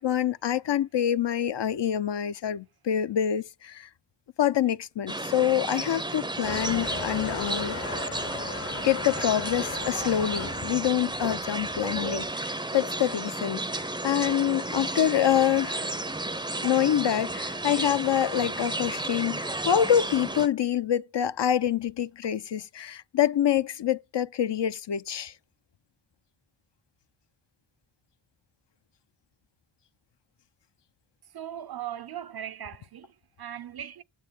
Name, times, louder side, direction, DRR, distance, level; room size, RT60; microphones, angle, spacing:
voice 1, 0.0-3.9 4.4-8.0 8.8-15.9 16.6-25.3, left 10 dB, 60° left, 0.7 m, -26 dB
sound 1, 5.1-20.5, right 2 dB, 10° right, 0.6 m, -33 dB
Motor vehicle (road) / Engine starting / Accelerating revving vroom, 6.4-12.3, left 4 dB, 30° left, 0.8 m, -38 dB
voice 2, 31.3-34.0, right 10 dB, 55° right, 0.6 m, -39 dB
9.5 x 7.1 x 8.5 m
cardioid pair, 60°, 47 cm